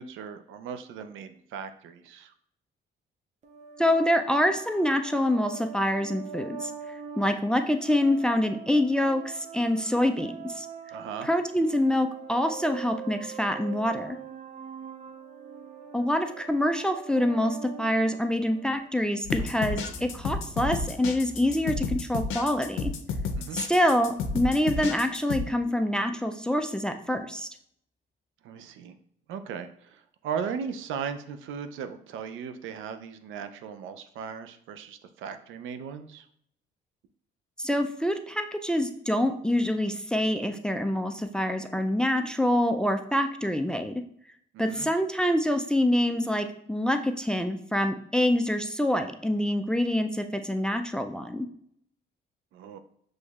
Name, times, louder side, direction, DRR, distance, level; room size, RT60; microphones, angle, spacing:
voice 1, 0.0-2.3 10.9-11.3 23.4-23.6 28.4-29.0 29.3-36.3 44.5-44.9 52.5-52.8, right 7 dB, 80° right, 9 dB, 0.5 m, -37 dB
sound 1, 3.4-18.9, right 7 dB, 35° right, 0.7 m, -43 dB
voice 2, 3.8-10.7 11.2-14.2 15.9-22.9 23.5-27.5 37.6-44.0 44.6-51.5, left 1 dB, 5° left, 6 dB, 0.3 m, -26 dB
sound 2, 19.2-25.4, left 4 dB, 85° left, 0.6 m, -31 dB
sound 3, 19.4-25.0 25.3-25.4, left 1 dB, 15° right, 1.3 m, -47 dB
6.1 x 3.1 x 2.3 m, 0.69 s
cardioid pair, 90°, 20 cm